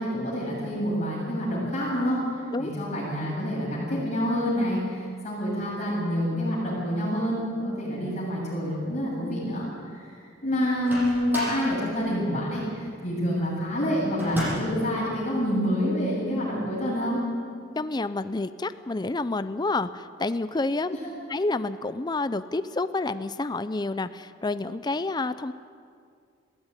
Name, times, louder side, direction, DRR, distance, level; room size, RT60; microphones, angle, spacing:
voice 1, 0.0-17.2 21.0-21.1, equal, 40° left, -7 dB, 7.5 m, -27 dB
Microwave oven, 10.6-11.7 14.2-14.8, equal, 10° right, 7.6 m, -32 dB
voice 2, 17.8-21.0 21.3-25.5, left 2 dB, 25° left, 13 dB, 0.5 m, -29 dB
20.5 x 15.5 x 9.8 m, 2.2 s
head